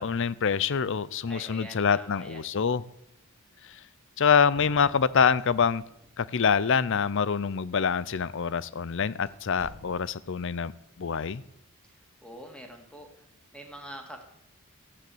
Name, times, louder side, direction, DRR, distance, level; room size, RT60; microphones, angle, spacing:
voice 1, 0.0-2.8 4.2-5.8 6.2-10.7 11.0-11.4, left 6 dB, 60° left, 19 dB, 0.5 m, -25 dB
voice 2, 1.2-2.5 12.2-13.1 13.5-14.2, equal, 5° left, 3 dB, 2.1 m, -44 dB
sound 1, 4.5-6.5, right 2 dB, 25° right, 0.9 m, -52 dB
sound 2, 5.4-6.0 6.3-6.4 7.1-7.2 8.0-8.2 8.6-8.7 9.3-10.4, left 1 dB, 30° left, 3.0 m, -52 dB
13.5 x 9.4 x 7.8 m, 0.77 s
head